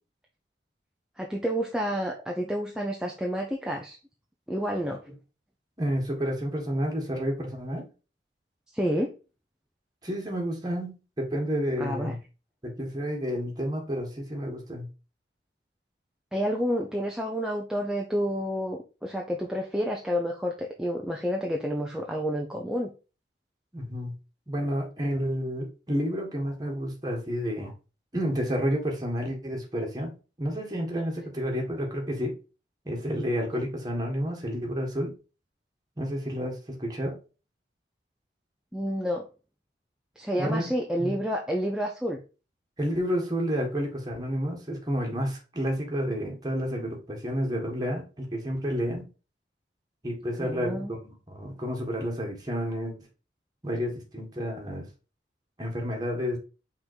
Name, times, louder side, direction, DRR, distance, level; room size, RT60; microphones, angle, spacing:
voice 1, 1.2-4.0 4.5-5.0 8.7-9.1 11.8-12.1 16.3-22.9 38.7-39.3 40.2-42.2 50.4-50.9, equal, 5° right, 0 dB, 0.6 m, -29 dB
voice 2, 5.8-7.9 10.0-12.2 12.6-14.9 23.7-24.1 24.5-27.7 28.1-30.1 30.4-32.3 32.8-35.1 36.0-37.2 40.4-40.7 41.0-41.2 42.8-49.0 50.0-52.9 53.6-54.9 55.6-56.4, equal, 20° right, 0 dB, 1.7 m, -30 dB
5.6 x 3.7 x 4.5 m, 0.32 s
head